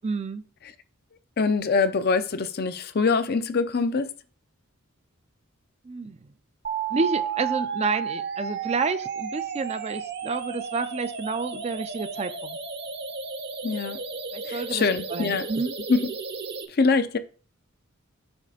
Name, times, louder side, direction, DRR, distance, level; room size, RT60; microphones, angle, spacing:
voice 1, 0.0-0.4 5.8-6.2 6.9-12.6 14.3-14.8 15.1-15.7, right 4 dB, 30° right, 0.4 m, -29 dB
voice 2, 1.4-4.1 13.6-14.0 14.4-15.5 15.9-16.1 16.7-17.2, left 4 dB, 45° left, 0.5 m, -24 dB
sound 1, 6.6-16.6, right 6 dB, 50° right, 0.8 m, -33 dB
7.9 x 3.3 x 5.0 m
head